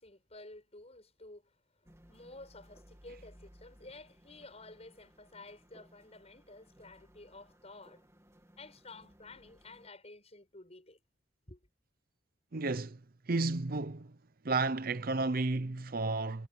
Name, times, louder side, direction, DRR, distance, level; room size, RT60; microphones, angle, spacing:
voice 1, 0.0-1.5 1.8-8.0 8.6-11.0 11.5-11.6, left 2 dB, 35° left, 7.3 m, -52 dB
sound 1, 1.8-9.9, equal, 15° right, 2.6 m, -61 dB
voice 2, 12.5-13.0 13.3-14.1 14.4-16.5, right 3 dB, 50° right, 0.7 m, -32 dB
head